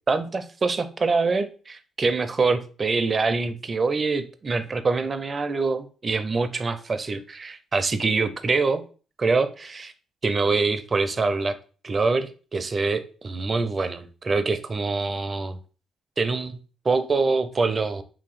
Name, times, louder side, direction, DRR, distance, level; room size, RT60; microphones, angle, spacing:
voice 1, 0.1-8.8 9.2-9.9 10.2-11.6 11.8-15.6 16.2-16.6 16.8-18.0, right 4 dB, 35° right, 0.4 m, -25 dB
2.9 x 2.8 x 4.1 m
cardioid pair, 90°, 0 cm